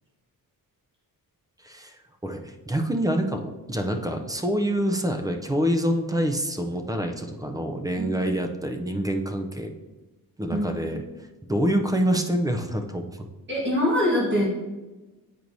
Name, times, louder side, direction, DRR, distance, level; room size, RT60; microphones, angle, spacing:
voice 1, 1.6-9.7 10.4-11.0 11.5-13.2, equal, 10° right, 4 dB, 0.3 m, -26 dB
voice 2, 10.5-10.8 13.5-14.4, left 1 dB, 30° right, -6 dB, 1.4 m, -24 dB
8.2 x 4.5 x 2.6 m, 1.1 s
wide cardioid pair, 170°, 36 cm